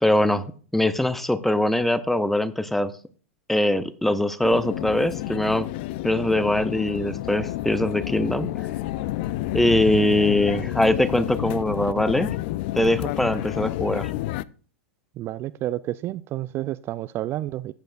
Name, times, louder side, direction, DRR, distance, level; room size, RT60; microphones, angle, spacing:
voice 1, 0.0-2.9 3.5-5.7 6.0-8.5 9.5-12.3 12.7-14.1, left 1 dB, 5° left, 0.7 m, -22 dB
sound 1, 4.4-14.4, left 16 dB, 50° left, 0.4 m, -30 dB
voice 2, 15.2-17.7, right 14 dB, 35° right, 0.4 m, -30 dB
14.0 x 8.3 x 2.5 m
hypercardioid pair, 105°, 7 cm